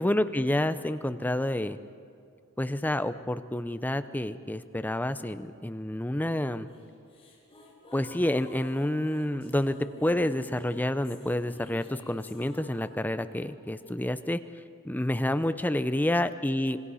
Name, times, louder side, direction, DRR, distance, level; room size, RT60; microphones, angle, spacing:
voice 1, 0.0-1.8 2.6-6.7 7.9-14.4 14.8-16.8, left 1 dB, 10° left, 12 dB, 0.6 m, -29 dB
sound 1, 6.7-13.9, left 2 dB, 25° left, 4.3 m, -50 dB
26.5 x 21.5 x 5.6 m, 2.4 s
head